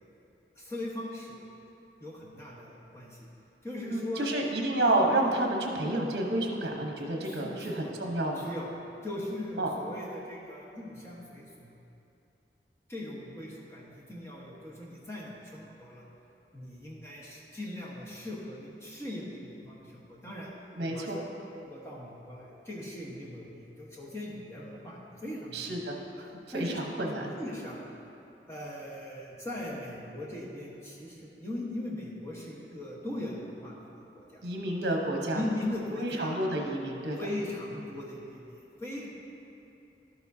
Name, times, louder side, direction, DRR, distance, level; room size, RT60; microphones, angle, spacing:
voice 1, 0.5-1.4 2.0-3.3 3.6-4.3 7.2-7.8 8.3-8.7 9.0-11.7 12.9-16.0 16.5-20.5 20.9-21.2 21.5-25.7 26.5-26.8 27.0-27.8 28.5-34.4 35.3-36.4 37.2-39.1, left 1 dB, 15° left, -5 dB, 1.2 m, -39 dB
voice 2, 3.9-8.5 9.6-9.7 20.8-21.2 25.5-27.3 34.4-35.4 36.0-37.2, right 1 dB, 65° right, 0 dB, 1.0 m, -30 dB
12.0 x 7.1 x 2.7 m, 2.9 s
head